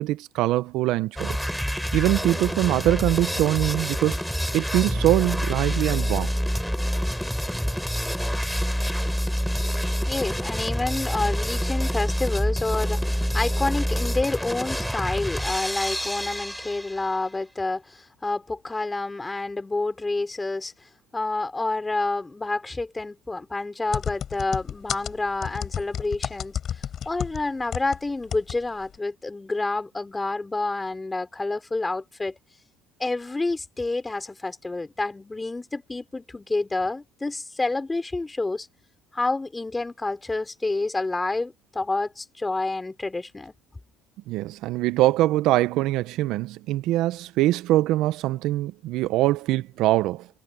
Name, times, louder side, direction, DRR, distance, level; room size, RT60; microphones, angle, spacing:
voice 1, 0.0-1.4 1.9-4.2 4.5-6.3 44.3-50.3, right 15 dB, 70° right, 0.9 m, -23 dB
sound 1, 1.2-17.1, equal, ahead, 6.5 m, -27 dB
voice 2, 10.1-32.4 33.0-38.7 39.1-43.5, left 2 dB, 15° left, 4.0 m, -29 dB
sound 2, 23.9-28.0 28.3-28.6 28.8-28.9, left 9 dB, 50° left, 4.1 m, -31 dB
supercardioid pair, 85°, 0 cm